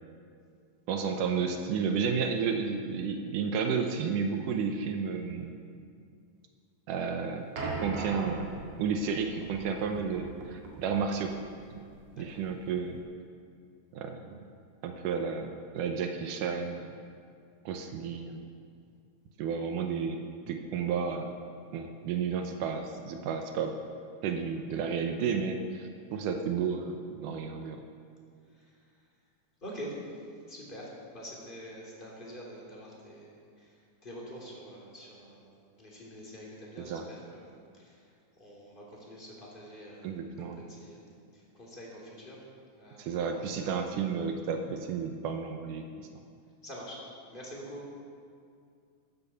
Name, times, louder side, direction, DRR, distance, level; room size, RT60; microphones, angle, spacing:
voice 1, 0.9-5.6 6.9-7.5 7.8-8.5 8.8-11.3 11.7-11.8 12.2-13.0 13.9-14.4 14.8-16.9 17.7-18.4 19.4-21.3 21.7-23.8 24.2-27.8 36.8-37.1 40.0-40.6 43.0-45.8, right 6 dB, 80° right, 5 dB, 2.4 m, -32 dB
sound 1, 7.6-13.0, right 3 dB, 55° right, 3.0 m, -41 dB
voice 2, 29.6-30.0 30.5-33.7 34.0-38.0 38.4-42.4 42.7-43.2 46.6-47.0 47.3-47.9, equal, 15° left, -4 dB, 3.0 m, -46 dB
14.0 x 9.5 x 7.0 m, 2.3 s
omnidirectional pair, 3.7 m